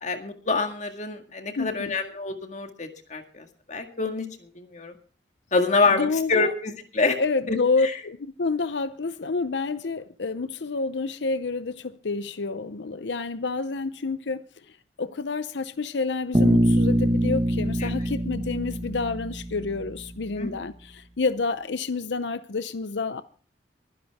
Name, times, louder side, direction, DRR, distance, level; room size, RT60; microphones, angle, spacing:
voice 1, 0.0-4.9 5.5-7.2 7.5-7.6 7.8-7.9 17.8-17.9 20.4-20.5, left 3 dB, 40° left, 1.9 m, -26 dB
voice 2, 1.6-1.9 5.9-6.5 7.2-14.4 15.0-23.2, left 4 dB, 75° left, 0.7 m, -29 dB
Bass guitar, 16.3-20.4, right 1 dB, 30° right, 1.6 m, -24 dB
23.0 x 10.5 x 3.6 m
head